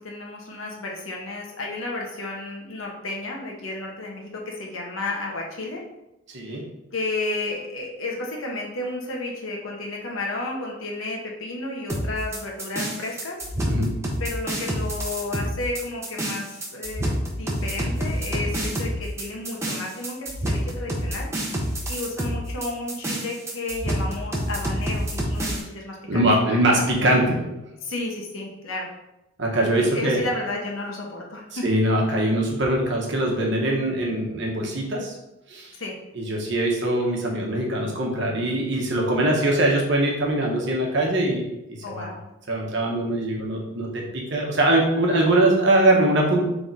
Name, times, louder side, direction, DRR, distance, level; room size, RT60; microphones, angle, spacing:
voice 1, 0.0-5.8 6.4-6.6 6.9-13.4 14.2-26.9 27.8-28.9 29.6-31.6 35.7-36.0 41.8-42.2, left 2 dB, 70° left, -1 dB, 1.0 m, -32 dB
voice 2, 6.3-6.6 13.6-13.9 26.1-27.4 29.4-30.2 31.6-35.1 35.5-35.7 36.2-41.4 41.9-42.1 42.5-46.4, right 1 dB, 55° right, -1 dB, 1.0 m, -22 dB
sound 1, 11.9-25.6, equal, 15° right, 0.6 m, -28 dB
3.7 x 3.4 x 4.1 m, 0.92 s
head